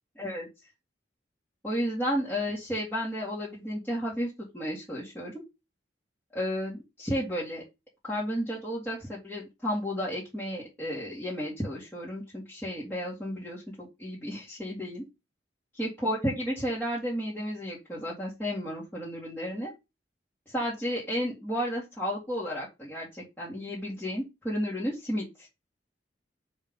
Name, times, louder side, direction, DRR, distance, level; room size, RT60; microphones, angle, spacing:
voice 1, 0.2-0.5 1.6-5.4 6.3-7.6 8.0-15.0 15.8-19.7 20.5-25.5, equal, 10° left, -7 dB, 2.1 m, -32 dB
7.1 x 3.8 x 5.4 m, 0.25 s
head